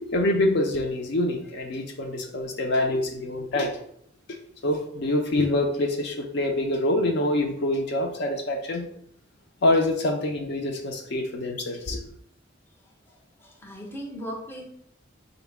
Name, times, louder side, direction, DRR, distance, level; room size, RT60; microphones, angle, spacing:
voice 1, 0.0-3.7 4.3-4.4 4.6-8.9 9.6-12.0, left 1 dB, 60° left, 3 dB, 0.4 m, -25 dB
voice 2, 13.1-14.6, equal, 10° left, 0 dB, 0.5 m, -38 dB
3.8 x 2.1 x 3.4 m, 0.68 s
head